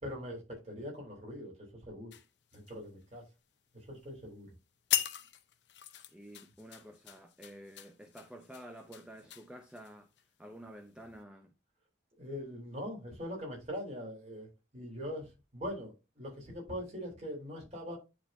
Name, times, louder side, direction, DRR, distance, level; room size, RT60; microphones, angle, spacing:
voice 1, 0.0-1.5 1.8-2.1 2.5-3.2 3.7-4.5 12.2-14.5 14.7-18.0, equal, 35° right, 3.5 m, -42 dB
sound 1, 2.1-3.3 3.7-4.0 4.5-4.6 4.9-10.2 10.8-11.0, left 12 dB, 70° left, 0.7 m, -39 dB
voice 2, 6.1-10.1 10.4-11.5, right 1 dB, 5° right, 0.6 m, -50 dB
10.5 x 4.2 x 2.6 m
head